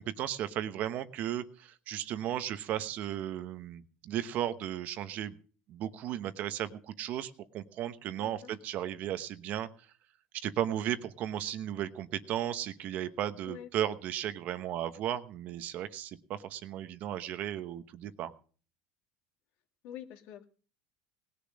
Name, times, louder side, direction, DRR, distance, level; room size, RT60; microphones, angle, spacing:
voice 1, 0.0-5.4 5.7-9.7 10.3-18.3, right 11 dB, 45° right, 11 dB, 1.0 m, -35 dB
voice 2, 8.2-8.5 13.5-13.7 19.8-20.4, left 10 dB, 60° left, 6 dB, 2.1 m, -46 dB
19.0 x 6.9 x 6.4 m, 0.41 s
cardioid pair, 155°, 4 cm